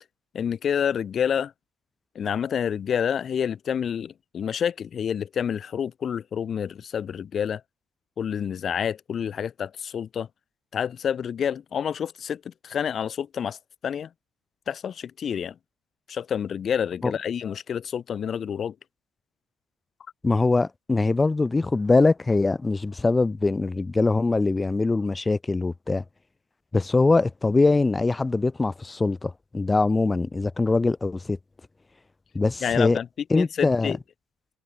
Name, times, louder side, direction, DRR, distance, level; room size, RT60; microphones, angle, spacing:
voice 1, 0.3-1.5 2.1-7.6 8.2-10.3 10.7-13.6 13.8-14.1 14.7-15.5 16.1-18.7 32.6-33.1 33.3-34.0, left 8 dB, 45° left, 1.5 m, -28 dB
voice 2, 20.2-26.0 26.7-31.4 32.3-33.0 33.3-34.0, left 3 dB, 20° left, 1.0 m, -22 dB
hypercardioid pair, 65°, 0 cm